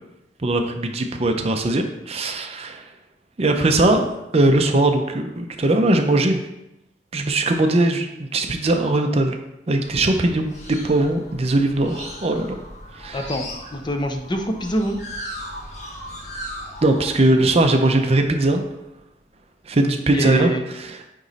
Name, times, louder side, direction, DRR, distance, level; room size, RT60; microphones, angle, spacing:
voice 1, 0.4-2.8 3.4-4.1 4.3-6.4 7.1-9.4 9.7-12.6 13.0-13.3 16.8-18.6 19.7-21.1, right 2 dB, 35° right, 5 dB, 0.6 m, -20 dB
sound 1, 9.8-18.9, equal, 40° left, 1.3 m, -38 dB
voice 2, 13.1-15.0 20.1-20.6, right 1 dB, 25° left, 4 dB, 0.6 m, -25 dB
8.9 x 3.1 x 4.1 m, 0.90 s
head